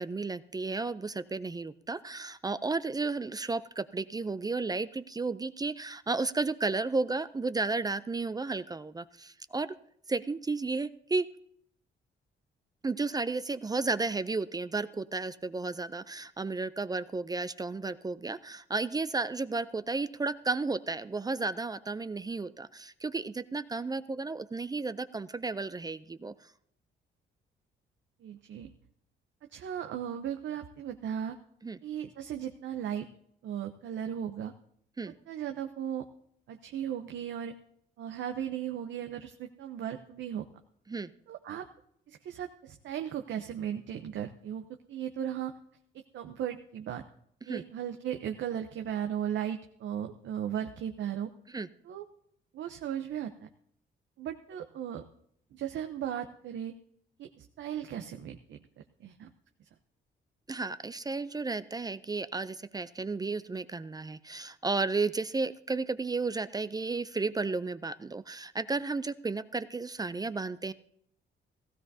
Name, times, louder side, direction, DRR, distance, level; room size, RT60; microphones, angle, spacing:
voice 1, 0.0-9.7 10.1-11.3 12.8-26.3 31.6-31.8 35.0-35.1 40.9-41.1 47.5-47.6 51.5-51.7 60.5-70.7, right 3 dB, 20° right, 14 dB, 0.4 m, -33 dB
voice 2, 28.2-28.7 29.5-31.4 31.8-33.1 33.4-34.5 35.3-36.0 36.5-37.5 38.0-40.4 41.3-41.7 42.1-45.5 45.9-47.0 47.5-51.3 51.8-52.0 52.5-53.5 54.2-55.0 55.5-56.7 57.2-58.6 59.0-59.3, right 9 dB, 70° right, 6 dB, 0.8 m, -36 dB
16.0 x 15.5 x 2.7 m, 0.69 s
cardioid pair, 90°, 20 cm